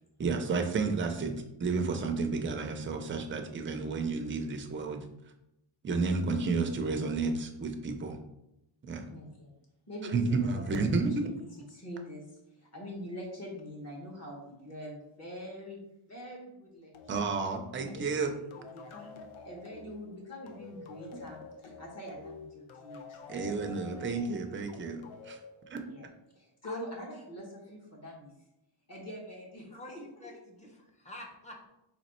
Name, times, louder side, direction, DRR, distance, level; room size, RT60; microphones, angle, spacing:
voice 1, 0.2-5.0 5.8-8.2 8.8-9.1 10.1-11.1 17.1-18.3 23.3-25.4 25.7-25.8, right 4 dB, 25° right, 5 dB, 0.4 m, -31 dB
voice 2, 9.1-9.5 9.9-17.2 17.7-18.2 18.6-23.5 24.0-24.3 25.9-26.1 26.3-28.3 28.9-30.3, equal, 30° left, -2 dB, 1.2 m, -45 dB
sound 1, 16.9-26.2, left 4 dB, 75° left, 0.7 m, -49 dB
voice 3, 29.7-31.7, left 2 dB, 15° left, 0 dB, 0.6 m, -47 dB
4.2 x 2.9 x 4.2 m, 0.87 s
wide cardioid pair, 175°, 48 cm